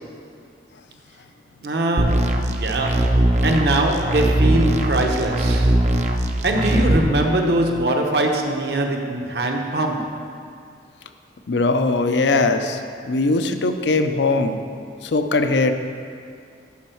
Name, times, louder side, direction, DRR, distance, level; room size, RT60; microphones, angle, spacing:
voice 1, 1.6-5.8 6.4-10.3, right 1 dB, 65° right, 2 dB, 0.9 m, -22 dB
sound 1, 2.0-7.0, right 1 dB, 40° right, 0.5 m, -20 dB
voice 2, 11.5-14.6 15.0-15.7, left 3 dB, 85° left, 8 dB, 0.5 m, -20 dB
11.5 x 5.5 x 4.5 m, 2.3 s
head